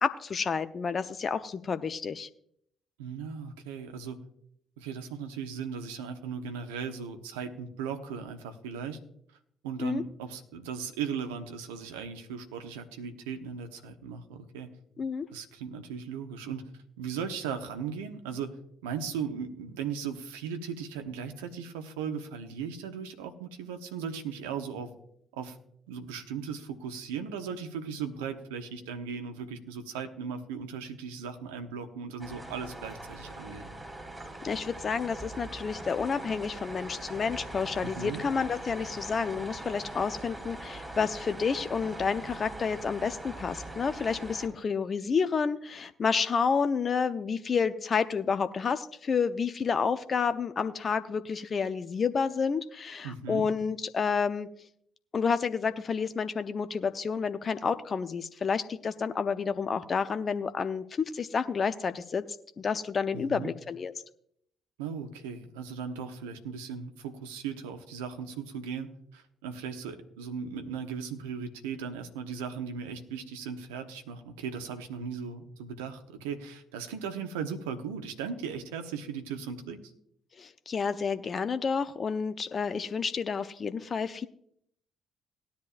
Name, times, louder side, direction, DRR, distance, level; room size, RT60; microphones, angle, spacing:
voice 1, 0.0-2.3 9.8-10.0 15.0-15.3 34.4-54.5 55.1-62.2 62.6-63.9 80.4-84.3, left 5 dB, 45° left, 11 dB, 0.6 m, -30 dB
voice 2, 3.0-4.2 4.8-9.0 9.6-14.8 15.3-16.7 17.0-18.5 18.8-24.9 25.3-25.6 25.9-33.7 37.8-38.2 53.0-53.5 63.1-63.5 64.8-79.8, right 6 dB, 80° right, 7 dB, 1.0 m, -37 dB
sound 1, 32.2-44.5, right 1 dB, 15° right, 4.8 m, -42 dB
18.0 x 10.5 x 2.5 m, 0.68 s
hypercardioid pair, 45°, 0 cm